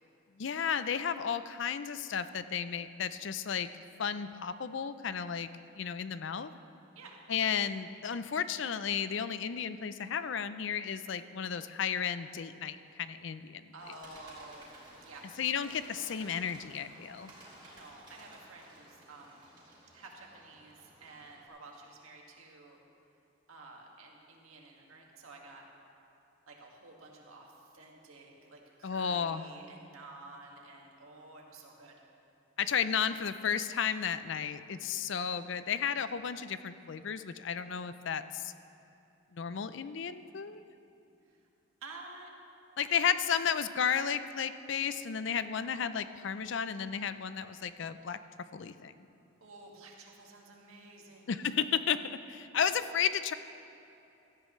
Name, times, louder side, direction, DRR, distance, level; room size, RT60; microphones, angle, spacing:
voice 1, 0.4-3.7 4.0-5.5 5.7-6.5 7.3-13.7 15.4-17.3 28.8-29.5 32.6-38.5 39.3-40.6 42.8-48.2 48.5-48.9 51.3-53.3, left 7 dB, 60° left, 12 dB, 0.4 m, -33 dB
voice 2, 13.7-14.7 15.0-15.2 17.7-19.4 19.9-22.8 23.5-25.7 26.5-32.0 41.3-41.4 41.8-42.3 42.8-42.9 49.4-51.3, right 2 dB, 85° right, -1 dB, 1.9 m, -51 dB
Bird, 13.8-21.5, right 1 dB, 20° right, 3.1 m, -55 dB
17.0 x 13.5 x 3.2 m, 2.9 s
head